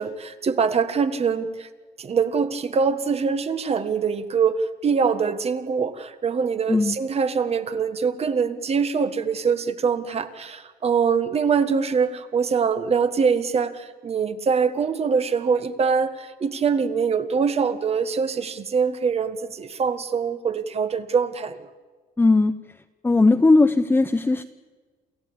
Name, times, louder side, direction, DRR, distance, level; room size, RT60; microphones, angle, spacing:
voice 1, 0.0-1.7 2.0-21.6, right 6 dB, 35° right, 10 dB, 1.7 m, -23 dB
voice 2, 22.2-22.5 23.0-24.4, left 3 dB, 10° left, 9 dB, 0.8 m, -18 dB
28.5 x 14.0 x 8.9 m, 1.4 s
cardioid pair, 110°, 17 cm